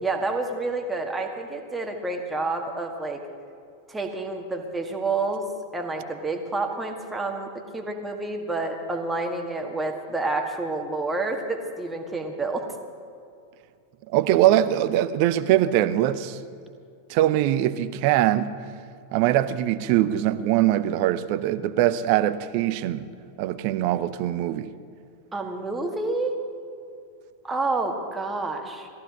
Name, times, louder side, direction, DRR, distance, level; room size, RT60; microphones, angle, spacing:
voice 1, 0.0-3.2 3.9-5.4 5.7-12.7 25.3-26.4 27.4-28.9, right 3 dB, 10° right, 3 dB, 1.7 m, -29 dB
voice 2, 14.1-16.4 17.1-18.5 19.1-23.1 23.4-24.7, right 13 dB, 45° right, 15 dB, 0.7 m, -22 dB
18.5 x 14.5 x 4.9 m, 2.4 s
figure-of-eight pair, 90°, 0 cm